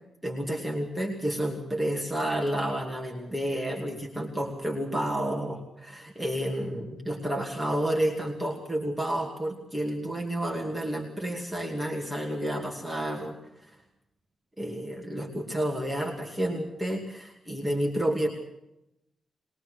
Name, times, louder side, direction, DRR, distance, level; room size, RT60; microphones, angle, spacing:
voice 1, 0.2-13.4 14.6-18.3, right 1 dB, 5° right, -1 dB, 2.5 m, -30 dB
21.5 x 21.5 x 6.4 m, 0.85 s
wide cardioid pair, 170°, 0 cm